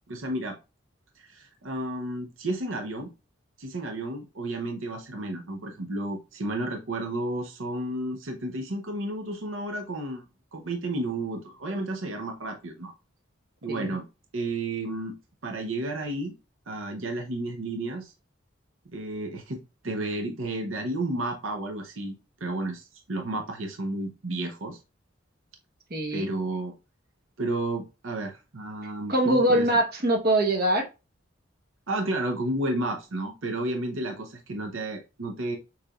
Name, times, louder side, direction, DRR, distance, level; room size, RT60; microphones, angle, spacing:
voice 1, 0.1-0.6 1.2-3.1 3.6-10.2 10.5-12.9 13.6-14.0 14.3-15.2 15.4-16.3 16.7-18.1 18.9-19.6 19.8-22.2 22.4-24.8 26.1-26.7 27.4-29.7 31.9-35.6, right 2 dB, 85° right, 4 dB, 0.8 m, -32 dB
voice 2, 25.9-26.3 29.1-30.9, right 1 dB, 50° right, 2 dB, 1.1 m, -23 dB
6.7 x 3.3 x 2.4 m, 0.29 s
head